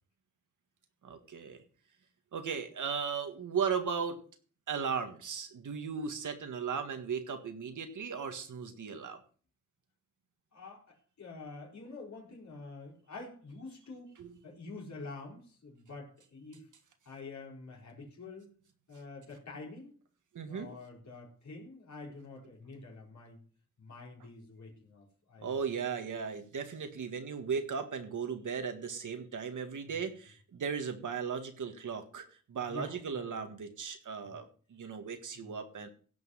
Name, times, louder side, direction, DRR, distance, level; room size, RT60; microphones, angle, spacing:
voice 1, 1.0-1.6 2.3-4.2 4.7-9.2 14.2-14.3 20.3-20.7 25.4-35.9, right 6 dB, 80° right, 1.8 m, -36 dB
voice 2, 10.5-14.2 14.4-16.7 17.0-18.5 18.9-20.0 20.5-23.4 23.8-25.6 26.2-26.3 29.9-30.0 32.6-33.3 34.2-34.4 35.3-35.7, left 3 dB, 65° left, 4.3 m, -47 dB
16.5 x 5.6 x 5.6 m
wide cardioid pair, 100°, 30 cm